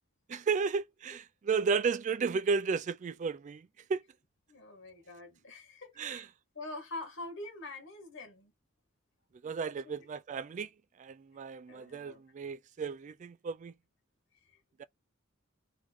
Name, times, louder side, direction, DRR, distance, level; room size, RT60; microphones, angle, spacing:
voice 1, 0.3-3.6 3.9-4.0 6.0-6.2 9.4-10.7 11.0-13.7 14.8-14.9, right 5 dB, 35° right, 0.3 m, -33 dB
voice 2, 4.5-6.3 6.5-8.5 9.8-10.1 11.7-12.2 14.5-14.6, left 2 dB, 65° left, 1.8 m, -45 dB
3.5 x 3.2 x 4.5 m
head